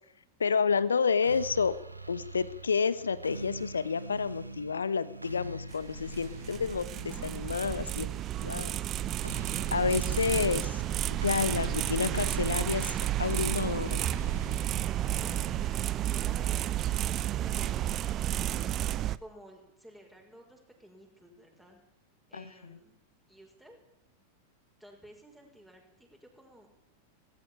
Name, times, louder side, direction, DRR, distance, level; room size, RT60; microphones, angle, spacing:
voice 1, 0.4-1.7 2.1-8.1 8.4-8.7 9.7-10.8 11.1-14.0 22.3-22.7, left 5 dB, 70° left, 17 dB, 1.1 m, -30 dB
sound 1, 1.2-17.2, right 2 dB, 85° right, 1.4 m, -44 dB
sound 2, 5.7-19.2, right 12 dB, 30° right, 0.7 m, -31 dB
voice 2, 15.2-18.7 19.2-21.8 22.3-23.0 23.3-23.8 24.8-26.7, right 1 dB, 5° right, 1 dB, 5.8 m, -53 dB
18.5 x 16.5 x 8.9 m, 0.80 s
figure-of-eight pair, 90°, 0 cm